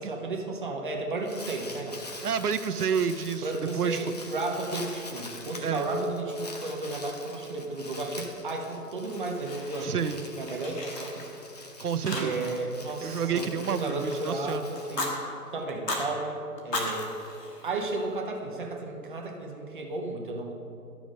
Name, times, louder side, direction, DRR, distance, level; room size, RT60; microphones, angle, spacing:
voice 1, 0.0-2.0 3.4-10.0 10.4-11.2 12.1-15.2 15.5-16.4 16.6-17.1 17.6-20.5, right 2 dB, 30° right, 1 dB, 1.0 m, -33 dB
Crumpling crinkling, 1.0-15.6, left 2 dB, 25° left, 0.7 m, -45 dB
voice 2, 2.2-4.1 5.6-5.9 9.8-10.2 11.8-12.4 13.0-14.7, right 7 dB, 65° right, 12 dB, 0.6 m, -29 dB
Fire, 9.0-10.1 10.4-11.6 12.0-12.6 12.9-14.3 14.8-15.1 15.7-16.1 16.6-18.2, left 1 dB, 75° left, 2.0 m, -36 dB
12.5 x 6.1 x 5.1 m, 2.8 s
figure-of-eight pair, 140°, 48 cm